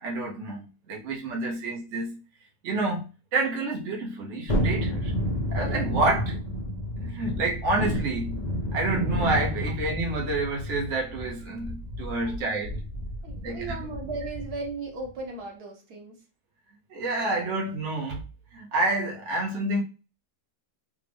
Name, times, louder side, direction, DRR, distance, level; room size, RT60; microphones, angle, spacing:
voice 1, 0.0-2.2 2.6-5.1 5.5-6.4 7.0-8.4 8.7-12.8 13.4-13.8 16.9-18.2 18.5-19.8, right 2 dB, 55° right, 1.0 m, -29 dB
Thunderstorm, 4.5-14.7 15.0-15.1, equal, 35° left, 0.7 m, -30 dB
voice 2, 13.2-16.2, right 3 dB, 75° right, 1.3 m, -36 dB
3.4 x 2.4 x 3.4 m
omnidirectional pair, 1.7 m